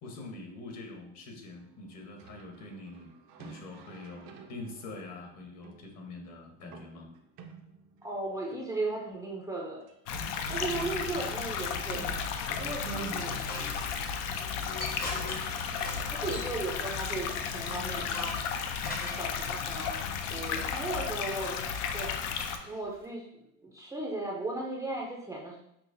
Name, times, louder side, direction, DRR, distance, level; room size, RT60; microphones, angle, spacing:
voice 1, 0.0-7.1 12.8-13.2, left 1 dB, 45° left, 2 dB, 1.0 m, -44 dB
sound 1, 2.2-8.9 9.1-9.2 9.4-9.5 9.9-16.1, right 4 dB, 55° right, 0.6 m, -50 dB
voice 2, 8.0-9.8 10.5-12.1 12.6-13.6 16.1-18.3 19.0-19.9 20.3-21.6 21.9-22.1 22.6-23.2 23.6-25.6, right 2 dB, 10° right, -3 dB, 0.5 m, -36 dB
sound 2, 10.1-22.6, left 6 dB, 70° left, 0.5 m, -34 dB
sound 3, 12.9-19.4 20.7-23.1, left 2 dB, 25° left, 0.7 m, -44 dB
5.7 x 2.0 x 2.6 m, 0.77 s
supercardioid pair, 110°, 35 cm